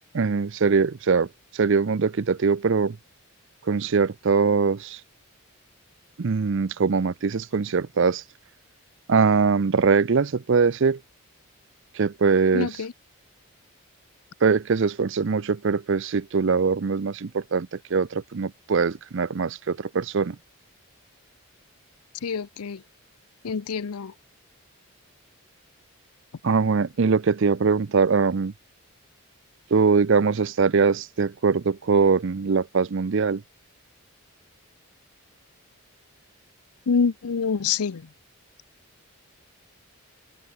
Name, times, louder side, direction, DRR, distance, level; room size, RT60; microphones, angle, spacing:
voice 1, 0.1-1.3 1.5-3.0 3.7-5.0 6.2-8.2 9.1-11.0 12.0-12.7 14.4-20.4 26.4-28.5 29.7-33.4, right 5 dB, 55° right, 0.5 m, -22 dB
voice 2, 12.5-12.9 22.2-22.8 23.4-24.1 36.9-38.1, left 5 dB, 85° left, 0.6 m, -26 dB
open air
head